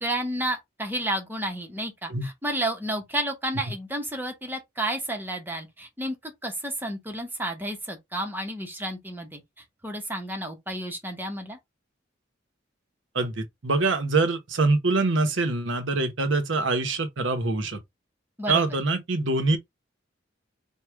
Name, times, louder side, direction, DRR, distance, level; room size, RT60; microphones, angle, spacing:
voice 1, 0.0-9.4 9.8-11.6 18.4-18.7, right 1 dB, 10° right, 1.0 m, -31 dB
voice 2, 13.1-17.8 18.5-19.6, right 3 dB, 70° right, 0.9 m, -24 dB
4.7 x 2.4 x 3.5 m
head